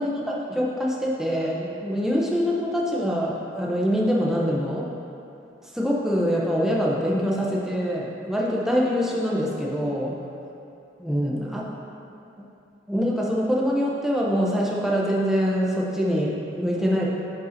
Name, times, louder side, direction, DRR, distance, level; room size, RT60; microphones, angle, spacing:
voice 1, 0.0-4.9 5.7-10.2 11.0-11.7 12.9-17.1, equal, ahead, -4 dB, 0.7 m, -24 dB
10.0 x 5.4 x 2.7 m, 2.7 s
head